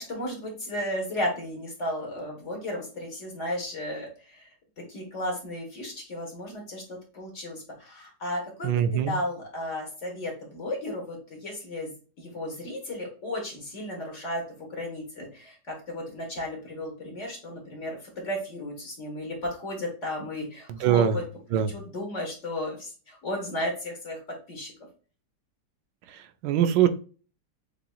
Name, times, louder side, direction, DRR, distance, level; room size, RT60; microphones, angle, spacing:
voice 1, 0.1-4.5 4.8-11.9 12.2-21.2 21.5-24.2 24.5-24.7, left 1 dB, 45° left, 0 dB, 1.7 m, -34 dB
voice 2, 8.6-9.1 20.8-21.1 21.5-21.7 26.4-26.9, right 10 dB, 85° right, 9 dB, 1.3 m, -22 dB
6.8 x 3.0 x 2.3 m, 0.37 s
omnidirectional pair, 1.9 m